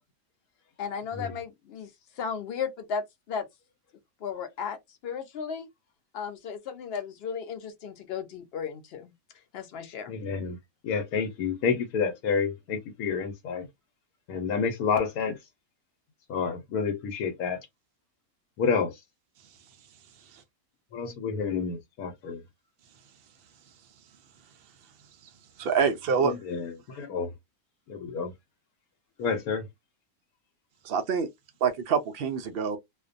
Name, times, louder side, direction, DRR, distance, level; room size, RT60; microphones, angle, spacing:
voice 1, 0.8-1.9 2.2-3.5 4.2-4.8 5.0-5.7 6.1-9.1 9.5-10.1, left 6 dB, 55° left, 0.7 m, -35 dB
voice 2, 10.1-10.6 10.8-13.7 14.3-15.4 16.3-17.6 18.6-18.9 20.9-22.4 26.5-27.3 27.9-28.3 29.2-29.6, left 5 dB, 80° left, 1.1 m, -29 dB
voice 3, 25.6-26.4 30.8-31.3 31.6-32.8, right 6 dB, 80° right, 0.5 m, -26 dB
2.5 x 2.1 x 2.5 m
omnidirectional pair, 1.6 m